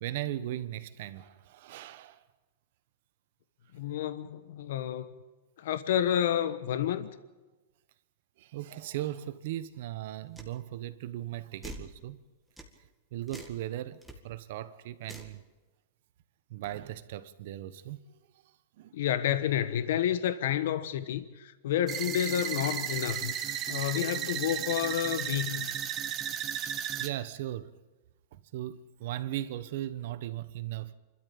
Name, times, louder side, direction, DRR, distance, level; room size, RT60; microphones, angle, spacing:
voice 1, 0.0-2.2 8.4-12.2 13.1-15.4 16.5-18.1 18.4-19.0 27.0-27.7 28.3-30.9, right 13 dB, 60° right, 1.2 m, -38 dB
voice 2, 3.7-5.1 5.6-7.1 18.9-25.8, left 10 dB, 70° left, 1.2 m, -30 dB
sound 1, 10.4-10.5 11.6-11.9 12.6-12.7 13.3-13.6 14.0-14.2 15.0-15.4, right 1 dB, ahead, 1.9 m, -44 dB
sound 2, 21.9-27.1, right 9 dB, 25° right, 1.4 m, -34 dB
27.0 x 13.0 x 8.7 m
supercardioid pair, 155°, 0 cm